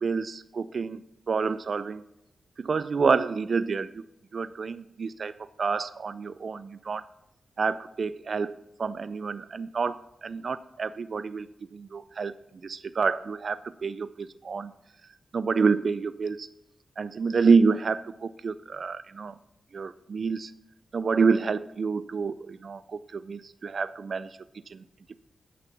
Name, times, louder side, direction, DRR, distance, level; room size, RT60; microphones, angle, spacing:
voice 1, 0.0-1.0 1.3-2.0 2.6-3.9 4.3-7.0 7.6-8.5 8.8-11.5 11.7-12.3 12.6-14.7 15.3-16.5 17.0-19.4 19.7-20.5 20.9-24.4 24.7-24.8, right 5 dB, 65° right, 15 dB, 0.3 m, -28 dB
8.2 x 5.8 x 6.8 m, 0.85 s
supercardioid pair, 45°, 0 cm